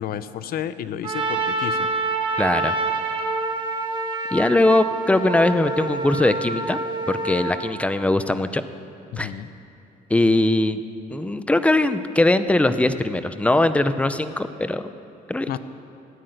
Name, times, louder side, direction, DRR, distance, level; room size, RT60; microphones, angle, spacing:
voice 1, 0.0-1.9 9.1-9.5 15.5-15.6, left 10 dB, 60° left, 13 dB, 0.7 m, -31 dB
Trumpet, 1.0-7.6, right 3 dB, 25° right, 1.7 m, -26 dB
voice 2, 2.4-2.7 4.3-6.8 7.1-8.6 9.2-9.3 10.1-10.8 11.1-14.9 15.3-15.5, left 2 dB, 5° left, 11 dB, 0.6 m, -20 dB
14.5 x 9.5 x 7.9 m, 2.7 s
cardioid pair, 110°, 17 cm